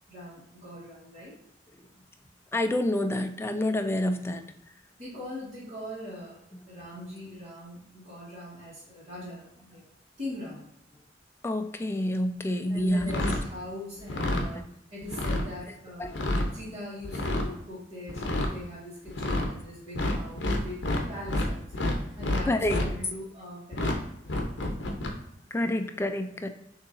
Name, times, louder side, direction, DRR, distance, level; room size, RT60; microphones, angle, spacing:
voice 1, 0.1-1.3 5.0-9.8 10.2-10.6 12.7-14.6 14.9-16.1 16.5-21.8 22.2-24.0 24.3-24.5, left 1 dB, 35° right, -10 dB, 1.5 m, -41 dB
voice 2, 2.5-4.4 11.4-13.1 16.0-16.1 22.5-22.8 25.5-26.5, left 1 dB, 15° left, 7 dB, 0.3 m, -28 dB
sound 1, 13.0-13.5 14.0-14.5 15.0-15.5 16.0-16.5 17.0-17.5 18.1-18.5 19.1-19.5 19.9-21.5 21.7-22.9 23.7-24.0 24.3-25.1, left 1 dB, 70° left, 0.8 m, -28 dB
6.5 x 2.9 x 2.6 m, 0.80 s
head